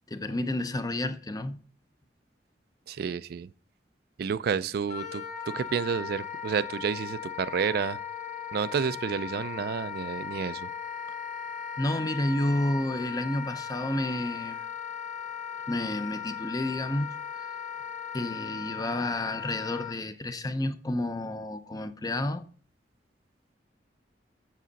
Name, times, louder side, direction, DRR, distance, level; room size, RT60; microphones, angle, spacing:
voice 1, 0.1-1.6 11.8-14.7 15.7-17.6 18.1-22.4, left 1 dB, 20° left, 0.6 m, -30 dB
voice 2, 2.9-3.5 4.2-8.0 8.5-10.7, right 6 dB, 60° right, 0.3 m, -30 dB
Wind instrument woodwind instrument, 4.9-20.0, left 8 dB, 45° left, 1.5 m, -38 dB
7.5 x 6.6 x 4.0 m
head